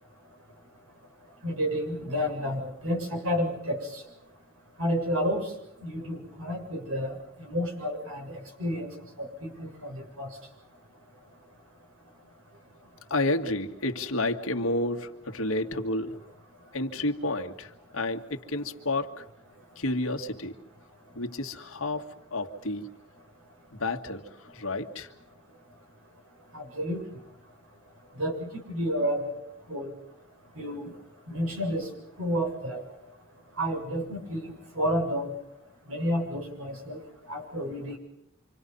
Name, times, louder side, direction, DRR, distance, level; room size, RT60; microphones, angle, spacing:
voice 1, 1.4-4.0 4.8-5.5 5.8-8.9 9.2-10.4 26.5-27.0 28.2-29.4 29.7-29.9 30.6-30.9 31.3-31.9 32.2-32.8 33.6-35.3 35.9-37.0 37.3-38.0, equal, 80° right, 7.6 m, -30 dB
voice 2, 13.1-16.2 16.7-19.2 19.8-20.6 21.2-22.9 23.8-25.1, left 2 dB, 70° left, 2.1 m, -30 dB
27.5 x 26.0 x 5.6 m
head